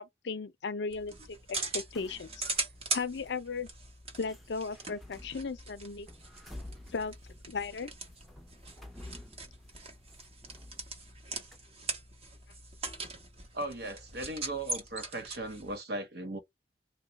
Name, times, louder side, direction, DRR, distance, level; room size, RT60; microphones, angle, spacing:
voice 1, 0.0-2.4 2.9-3.7 4.2-6.1 6.9-7.2 7.5-7.9, left 4 dB, 75° left, 0.5 m, -36 dB
sound 1, 0.9-15.8, right 3 dB, 35° right, 0.9 m, -41 dB
sound 2, 1.9-2.7 3.2-3.3 4.2-11.2 11.5-11.6, left 1 dB, ahead, 0.6 m, -51 dB
voice 2, 13.5-16.4, right 1 dB, 60° right, 0.8 m, -37 dB
2.8 x 2.3 x 3.9 m
head